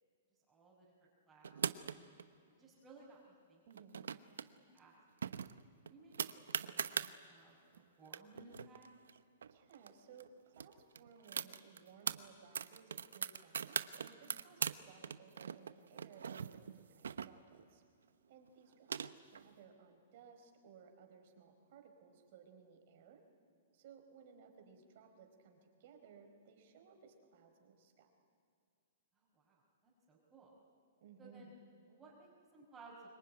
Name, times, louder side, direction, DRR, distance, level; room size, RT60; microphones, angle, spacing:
voice 1, 0.5-2.2 2.6-4.9 5.2-5.4 5.9-8.9 29.2-30.6 31.2-31.5 31.9-33.0, right 3 dB, 15° right, -7 dB, 5.2 m, -61 dB
sound 1, 1.4-2.2 3.7-4.5 4.8-4.9 5.2-7.1 7.7-9.9 10.2-10.3 10.5-12.2 12.5-14.8 15.0-17.6 18.5-19.4, right 7 dB, 90° right, 0.9 m, -41 dB
voice 2, 3.7-4.0 9.5-17.8 18.3-23.2 23.7-28.1 31.0-31.6, right 6 dB, 55° right, 4 dB, 4.5 m, -60 dB
25.0 x 22.5 x 9.7 m, 2.3 s
hypercardioid pair, 140°, 0 cm